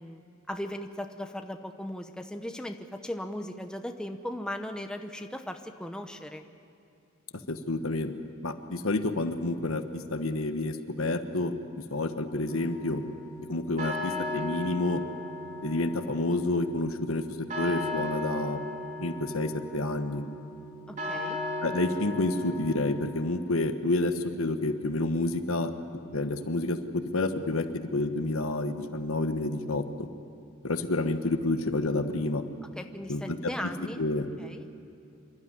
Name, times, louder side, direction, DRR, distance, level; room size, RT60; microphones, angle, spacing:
voice 1, 0.0-6.4 20.9-21.4 32.8-34.0 34.4-34.6, left 1 dB, 5° left, 6 dB, 0.8 m, -38 dB
voice 2, 7.5-8.1 8.4-11.5 11.9-13.0 13.5-15.0 15.6-18.6 19.0-20.2 21.6-25.7 26.1-27.7 27.9-30.1 30.6-32.4 33.1-33.4 34.0-34.3, left 2 dB, 75° left, 8 dB, 1.2 m, -29 dB
sound 1, 12.5-23.7, left 1 dB, 35° right, 3.6 m, -37 dB
27.0 x 12.5 x 9.9 m, 2.6 s
head